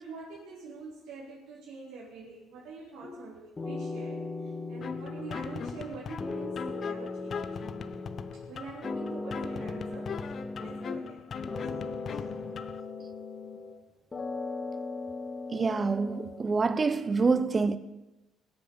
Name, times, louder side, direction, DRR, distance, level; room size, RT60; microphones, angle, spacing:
voice 1, 0.0-7.5 8.3-12.2, right 4 dB, 80° right, 4.0 m, -45 dB
sound 1, 3.0-3.3 3.6-5.9 6.2-8.5 8.8-11.2 11.5-13.8 14.1-16.4, left 3 dB, 20° left, 1.8 m, -38 dB
sound 2, 4.8-12.8, left 6 dB, 40° left, 0.8 m, -39 dB
voice 2, 15.5-17.8, right 4 dB, 25° right, 0.8 m, -26 dB
20.0 x 8.4 x 7.1 m
cardioid pair, 120°, 0 cm